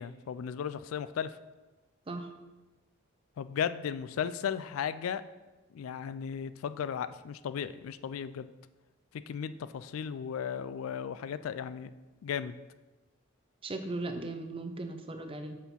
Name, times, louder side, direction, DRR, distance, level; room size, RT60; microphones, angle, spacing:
voice 1, 0.0-1.3 3.4-5.2 5.7-8.5 9.3-11.9 12.2-12.5, left 7 dB, 90° left, 14 dB, 0.3 m, -35 dB
voice 2, 13.6-15.6, right 2 dB, 25° right, 6 dB, 0.6 m, -37 dB
5.8 x 4.3 x 5.5 m, 1.2 s
head